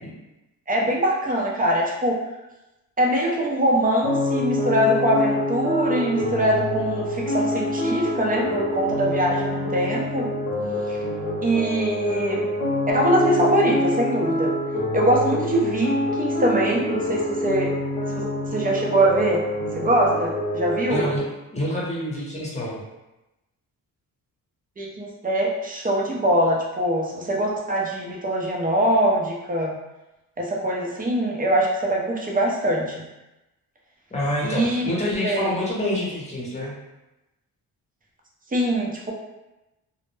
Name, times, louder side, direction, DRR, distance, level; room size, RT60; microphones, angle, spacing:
voice 1, 0.7-2.2 3.0-10.3 10.9-11.0 11.4-12.4 12.9-14.5 14.9-15.9 16.2-17.7 18.1-19.4 19.8-21.1 24.8-29.7 30.4-33.0 34.4-35.5 38.5-39.1, right 1 dB, 20° right, -2 dB, 0.6 m, -23 dB
sound 1, 4.0-21.2, left 1 dB, 85° left, 0.7 m, -26 dB
voice 2, 20.9-22.8 34.1-36.7, left 1 dB, 15° left, -5 dB, 0.9 m, -27 dB
2.1 x 2.0 x 3.1 m, 0.98 s
cardioid pair, 85°, 39 cm